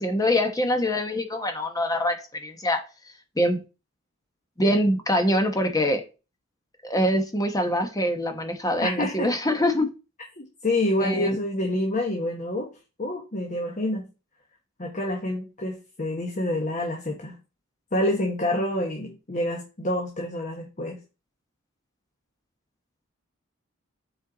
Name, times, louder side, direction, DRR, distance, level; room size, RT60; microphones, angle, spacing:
voice 1, 0.0-2.2 2.4-2.8 3.4-3.6 4.6-6.0 6.8-9.9 11.0-11.4, left 1 dB, 15° left, 6 dB, 1.1 m, -24 dB
voice 2, 8.8-9.3 10.4-12.7 13.0-14.0 14.8-17.4 17.9-21.0, left 1 dB, 35° left, 2 dB, 1.2 m, -27 dB
7.6 x 4.4 x 4.0 m, 0.30 s
head